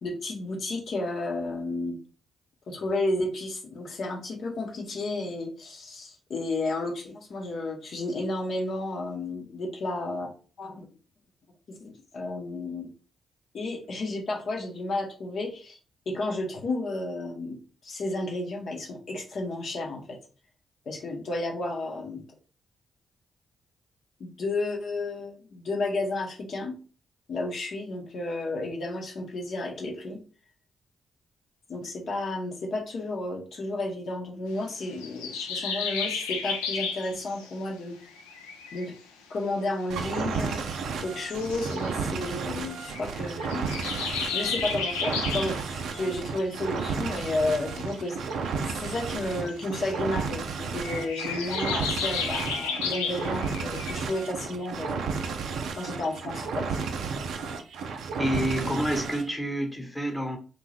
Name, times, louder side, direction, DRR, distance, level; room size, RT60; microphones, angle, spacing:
voice 1, 0.0-2.0 2.7-10.3 10.6-10.9 11.7-12.9 13.5-15.8 16.1-17.6 17.8-20.2 20.9-22.2 24.2-26.8 27.3-30.2 31.7-38.0 38.7-38.9 39.3-40.6 41.0-43.7 44.3-48.2 48.8-55.2 55.8-56.7, left 2 dB, 60° left, -1 dB, 0.7 m, -32 dB
sound 1, 35.0-37.5 38.0-38.8 40.1-40.8 41.2-41.9 42.9-45.7 47.7-47.9 49.5-49.9 50.8-54.3, left 5 dB, 85° left, 0.3 m, -33 dB
sound 2, 39.9-59.3, right 5 dB, 70° right, 0.4 m, -33 dB
voice 2, 58.2-60.4, equal, 10° left, 2 dB, 0.9 m, -28 dB
2.5 x 2.2 x 3.2 m, 0.36 s
hypercardioid pair, 40°, 0 cm